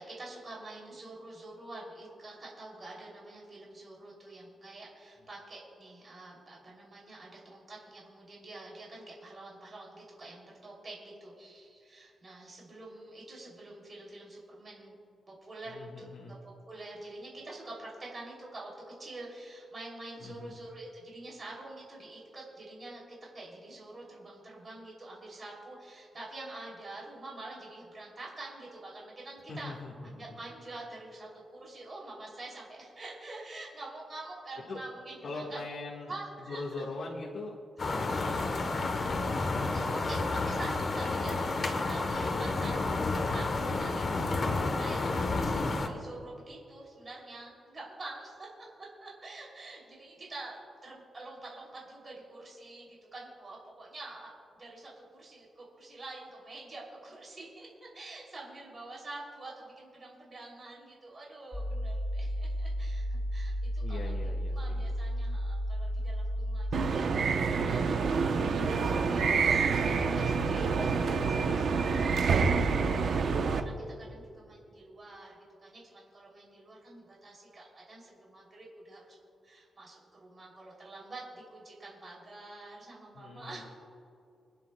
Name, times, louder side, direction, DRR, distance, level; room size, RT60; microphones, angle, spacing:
voice 1, 0.0-14.9 15.3-29.7 30.0-35.6 36.1-36.8 37.9-38.0 38.3-38.6 39.7-72.1 72.4-75.3 75.6-79.2 79.4-83.6, right 2 dB, 35° right, -3 dB, 2.9 m, -47 dB
voice 2, 15.7-16.3 20.2-20.5 29.5-30.4 34.7-34.8 35.2-36.1 36.5-37.6 37.9-38.6 63.8-64.8 83.1-83.6, left 3 dB, 55° left, -3 dB, 1.5 m, -41 dB
sound 1, 37.8-45.9, left 3 dB, 40° left, 1.0 m, -30 dB
sound 2, 61.5-66.9, equal, 10° left, 0.3 m, -33 dB
sound 3, 66.7-73.6, right 5 dB, 60° right, 0.7 m, -27 dB
29.5 x 10.0 x 2.3 m, 2.6 s
wide cardioid pair, 155°, 0 cm